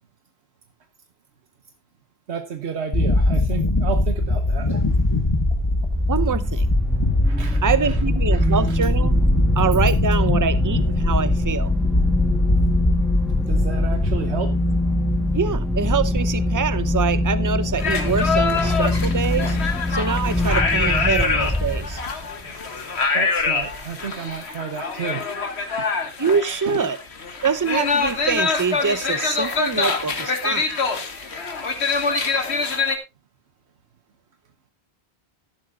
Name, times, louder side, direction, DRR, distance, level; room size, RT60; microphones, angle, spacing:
voice 1, 2.3-4.8 7.2-8.0 8.3-8.8 13.5-14.5 22.4-22.6 23.1-25.8 26.6-26.8 29.7-29.9 31.3-31.4, right 6 dB, 80° right, 8 dB, 1.4 m, -32 dB
sound 1, 2.9-14.2, left 2 dB, 25° left, 1.3 m, -22 dB
sound 2, 4.9-22.3, left 1 dB, ahead, 1.4 m, -23 dB
voice 2, 6.1-6.7 7.6-9.2 9.6-11.7 15.3-19.6 19.9-22.0 26.2-27.0 27.4-30.7, right 6 dB, 20° right, 15 dB, 0.6 m, -24 dB
sound 3, 17.8-33.0, left 4 dB, 75° left, 1.8 m, -25 dB
14.0 x 12.0 x 2.4 m, 0.23 s
omnidirectional pair, 1.1 m